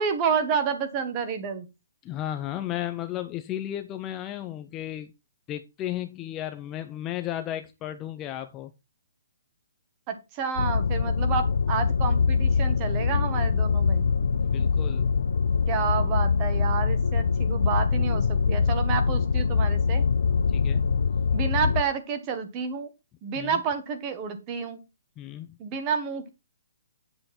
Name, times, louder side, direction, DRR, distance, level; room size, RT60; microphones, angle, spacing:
voice 1, 0.0-1.7 10.1-14.0 15.7-20.0 21.3-22.9 23.2-24.8 25.6-26.3, right 6 dB, 20° right, 1.3 m, -29 dB
voice 2, 2.0-5.1 5.5-8.7 14.4-15.1 20.5-20.8 23.4-23.6 25.2-25.6, left 12 dB, 15° left, 0.5 m, -34 dB
sound 1, 10.6-21.8, left 5 dB, 75° left, 0.7 m, -23 dB
8.9 x 7.8 x 4.2 m
hypercardioid pair, 175°, 0 cm